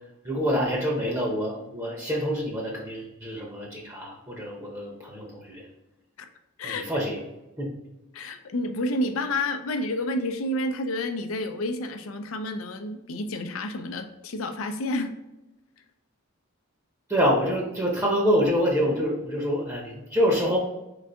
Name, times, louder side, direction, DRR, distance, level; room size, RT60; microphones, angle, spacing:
voice 1, 0.2-5.6 6.6-7.2 7.6-7.7 17.1-20.6, equal, 15° right, -2 dB, 0.8 m, -26 dB
voice 2, 8.1-15.2, left 1 dB, 80° left, 8 dB, 0.5 m, -30 dB
4.0 x 3.5 x 3.4 m, 0.95 s
head